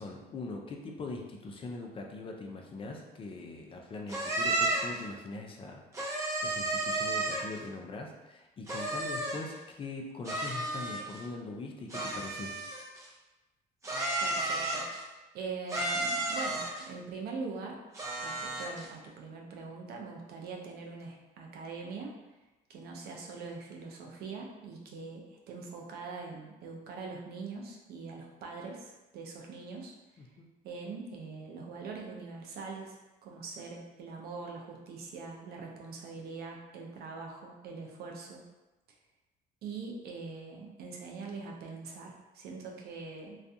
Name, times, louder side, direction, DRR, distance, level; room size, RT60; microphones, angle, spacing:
voice 1, 0.0-12.5 30.2-30.5, left 3 dB, 30° left, 1 dB, 0.4 m, -42 dB
sound 1, 4.1-5.0 5.9-7.6 8.7-9.5 10.2-11.2 11.9-13.0 13.8-15.0 15.7-16.9 17.9-18.9, right 2 dB, 20° right, 0.6 m, -32 dB
voice 2, 14.2-15.1 15.3-17.8 18.2-22.1 22.7-29.9 30.6-33.0 33.2-38.4 39.6-43.4, right 4 dB, 70° right, 0 dB, 0.5 m, -42 dB
2.4 x 2.2 x 2.6 m, 1.1 s
cardioid pair, 110°, 17 cm